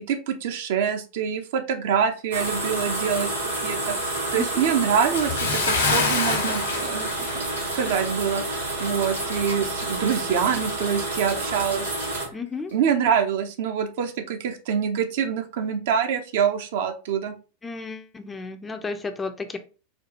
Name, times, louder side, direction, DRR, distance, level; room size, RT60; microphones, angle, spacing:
voice 1, 0.0-7.1 7.3-12.2 12.7-17.3, right 7 dB, 55° right, 7 dB, 0.5 m, -26 dB
sound 1, 2.3-12.3, right 2 dB, 80° right, 1.5 m, -29 dB
Bathtub (filling or washing) / Splash splatter, 5.1-8.0 8.3-8.5 9.1-9.2, left 4 dB, 75° left, 1.1 m, -26 dB
voice 2, 12.3-12.7 17.6-19.6, left 4 dB, 15° left, 8 dB, 0.4 m, -33 dB
4.2 x 2.3 x 2.7 m, 0.34 s
figure-of-eight pair, 90°, 0 cm